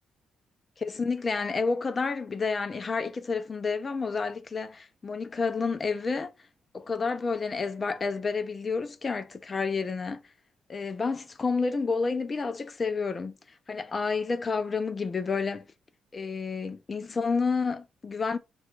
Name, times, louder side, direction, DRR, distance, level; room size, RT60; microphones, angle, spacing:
voice 1, 0.8-6.3 6.7-10.2 10.7-13.3 13.7-15.6 16.1-18.4, left 4 dB, 25° left, 0.5 m, -30 dB
3.4 x 2.3 x 4.4 m
cardioid pair, 150°, 0 cm